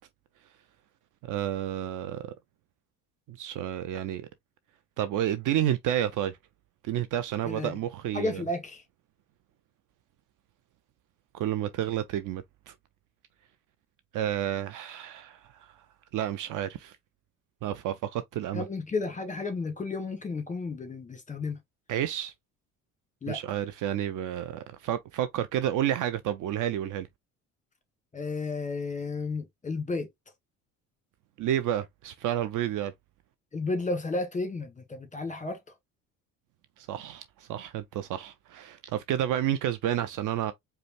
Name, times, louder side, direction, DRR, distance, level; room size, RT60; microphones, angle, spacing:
voice 1, 1.2-2.2 3.3-4.3 5.0-6.4 6.8-8.4 11.3-12.7 14.1-15.7 16.1-17.0 17.6-18.6 21.9-22.3 23.3-27.1 31.4-32.9 36.8-40.5, right 11 dB, 45° right, 0.6 m, -30 dB
voice 2, 8.1-8.8 18.5-21.6 23.2-23.4 28.1-30.1 33.5-35.6, left 3 dB, 15° left, 1.3 m, -32 dB
5.0 x 2.2 x 3.0 m
figure-of-eight pair, 55°, 45 cm